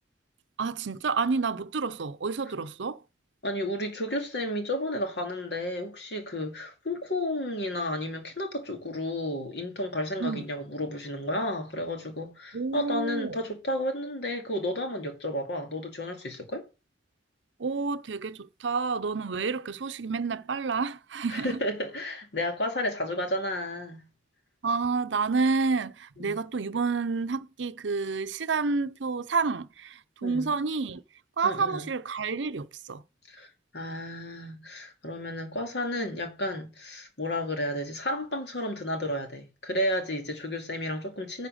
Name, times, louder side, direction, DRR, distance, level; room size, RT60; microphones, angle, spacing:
voice 1, 0.6-3.0 10.2-10.4 12.5-13.4 17.6-21.6 24.6-31.0 31.4-33.0, right 4 dB, 80° right, 0.6 m, -29 dB
voice 2, 3.4-16.6 21.3-24.1 26.2-26.4 30.2-30.5 31.4-31.9 33.3-33.5 33.7-41.5, left 1 dB, 65° left, 2.4 m, -32 dB
10.0 x 4.3 x 6.4 m
head